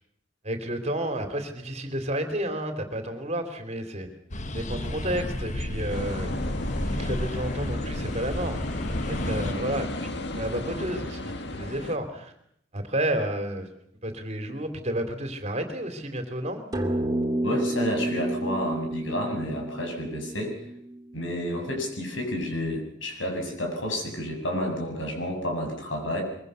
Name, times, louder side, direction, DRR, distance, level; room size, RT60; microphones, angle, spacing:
voice 1, 0.4-4.1 4.5-6.3 6.8-8.6 9.1-12.3 12.7-13.7 14.0-16.6, right 1 dB, 35° right, 7 dB, 3.1 m, -31 dB
sound 1, 4.3-9.5, left 1 dB, 40° left, 1.3 m, -31 dB
sound 2, 5.9-12.0, left 1 dB, 65° left, 1.9 m, -34 dB
sound 3, 16.7-21.4, right 1 dB, 20° right, 3.0 m, -30 dB
voice 2, 17.4-20.6 21.1-26.2, equal, 90° left, 3 dB, 7.1 m, -30 dB
23.5 x 23.0 x 6.9 m, 0.71 s
head